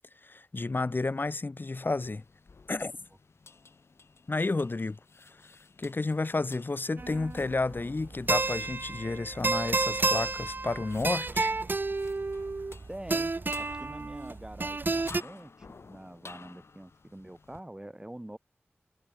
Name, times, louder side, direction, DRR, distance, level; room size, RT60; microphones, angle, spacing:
voice 1, 0.2-2.2 2.7-2.9 4.3-5.4 5.8-11.5, left 3 dB, 50° left, 4.3 m, -31 dB
sound 1, 1.9-17.6, left 4 dB, 80° left, 7.2 m, -53 dB
sound 2, 7.0-15.2, right 3 dB, 50° right, 0.8 m, -31 dB
voice 2, 12.9-13.3 13.6-18.4, right 1 dB, 15° right, 7.1 m, -45 dB
wide cardioid pair, 70°, 4 cm